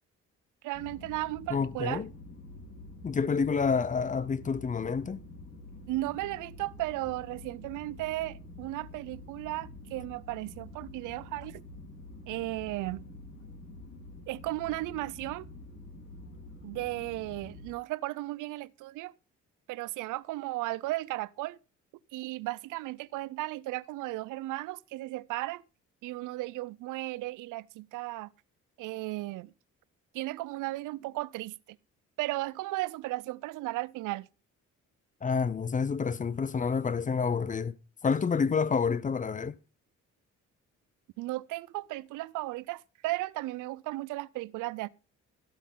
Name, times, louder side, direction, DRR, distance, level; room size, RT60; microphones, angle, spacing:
voice 1, 0.6-2.0 5.9-11.6 12.3-13.1 14.3-15.5 16.6-19.1 19.7-21.6 22.1-25.6 26.0-28.3 28.8-29.5 30.1-31.8 32.2-34.3 41.2-44.9, right 18 dB, 85° right, 0.5 m, -35 dB
sound 1, 0.7-17.7, left 2 dB, 55° left, 6.4 m, -47 dB
voice 2, 1.5-2.1 3.0-5.2 35.2-37.8 38.0-39.6, left 5 dB, 25° left, 0.5 m, -28 dB
13.5 x 8.3 x 3.7 m
cardioid pair, 90°, 30 cm